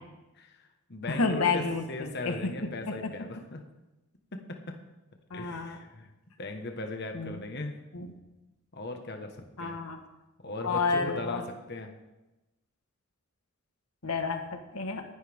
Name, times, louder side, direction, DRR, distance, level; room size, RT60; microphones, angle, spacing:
voice 1, 0.4-3.6 4.3-4.8 5.3-6.1 6.4-7.7 8.7-9.8 10.4-11.4 11.7-11.9, left 2 dB, 50° left, 4 dB, 1.5 m, -38 dB
voice 2, 1.1-2.5 2.9-3.1 5.3-5.8 7.1-7.4 7.9-8.1 9.6-10.0 10.6-11.4 14.0-15.0, left 4 dB, 85° left, 5 dB, 1.4 m, -30 dB
19.5 x 11.5 x 3.6 m, 1.0 s
head